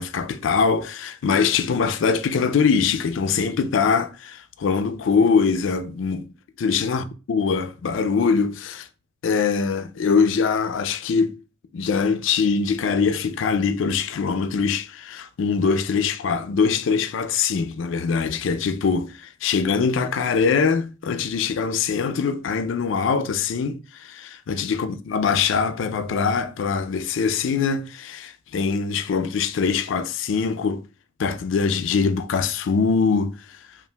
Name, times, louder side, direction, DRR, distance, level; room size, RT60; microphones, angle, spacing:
voice 1, 0.0-6.3 6.6-8.9 9.2-11.3 11.7-30.8 31.2-33.6, left 5 dB, 70° left, 0.4 m, -23 dB
5.5 x 2.4 x 2.2 m
head